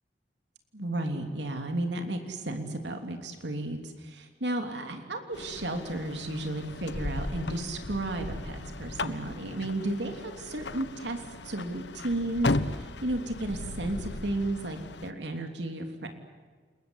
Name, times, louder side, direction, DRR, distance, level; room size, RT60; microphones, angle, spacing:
voice 1, 0.7-16.1, right 1 dB, 85° right, 5 dB, 3.1 m, -33 dB
sound 1, 5.3-15.1, left 2 dB, 85° left, 1.2 m, -36 dB
29.0 x 21.5 x 8.2 m, 1.6 s
head